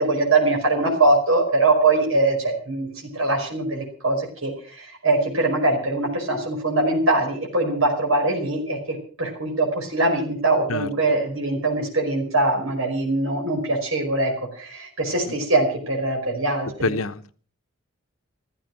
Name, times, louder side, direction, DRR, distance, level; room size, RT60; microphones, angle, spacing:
voice 1, 0.0-2.9 3.1-16.9, right 2 dB, 80° right, 0 dB, 5.2 m, -22 dB
voice 2, 16.8-17.3, left 3 dB, 85° left, 11 dB, 1.0 m, -26 dB
15.0 x 15.0 x 6.0 m, 0.42 s
head